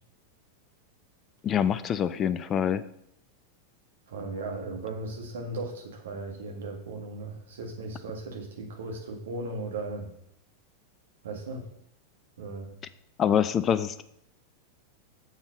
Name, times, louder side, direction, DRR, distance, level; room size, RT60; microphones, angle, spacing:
voice 1, 1.4-2.8 13.2-14.0, left 8 dB, 25° left, 14 dB, 0.4 m, -25 dB
voice 2, 4.1-10.1 11.2-11.6 12.4-12.7, right 2 dB, 60° right, 2 dB, 1.8 m, -37 dB
7.0 x 5.6 x 5.6 m, 0.75 s
figure-of-eight pair, 90°, 0 cm